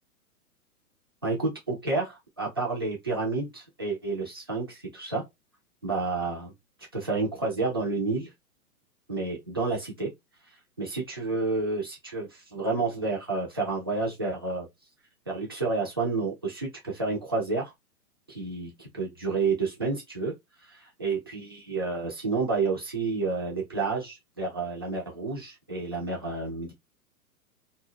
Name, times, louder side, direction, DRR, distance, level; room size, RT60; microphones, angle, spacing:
voice 1, 1.2-5.2 5.8-6.5 6.9-8.3 9.1-10.1 10.8-14.7 15.3-17.7 18.3-20.3 20.7-26.7, right 3 dB, 20° right, 0.3 m, -30 dB
2.1 x 2.0 x 3.5 m
figure-of-eight pair, 115°, 46 cm